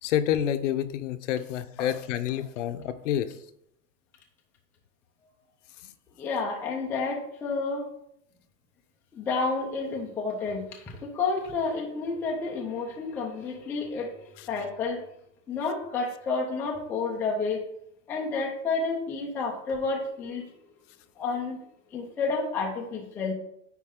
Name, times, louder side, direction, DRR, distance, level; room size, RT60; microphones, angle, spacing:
voice 1, 0.0-3.3 5.8-5.9 14.4-14.5, left 10 dB, 70° left, 10 dB, 0.8 m, -28 dB
voice 2, 6.2-7.9 9.1-15.0 15.5-17.7 18.1-20.5 21.2-21.6 21.9-23.3, left 4 dB, 5° left, -1 dB, 0.3 m, -30 dB
9.5 x 4.1 x 3.7 m, 0.75 s
supercardioid pair, 165°, 38 cm